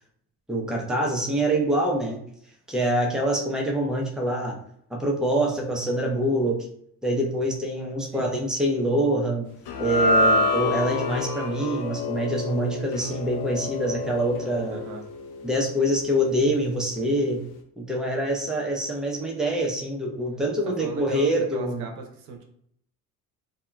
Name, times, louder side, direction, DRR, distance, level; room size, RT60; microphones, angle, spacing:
voice 1, 0.5-2.2 2.7-4.6 4.9-6.7 7.0-9.5 9.8-14.8 15.4-17.4 17.8-21.9, right 1 dB, ahead, -1 dB, 0.7 m, -25 dB
sound 1, 9.7-16.1, left 2 dB, 60° left, 0.6 m, -27 dB
voice 2, 14.7-15.0 20.8-22.4, right 3 dB, 85° right, 2 dB, 0.6 m, -38 dB
2.8 x 2.4 x 2.3 m, 0.68 s
hypercardioid pair, 50°, 44 cm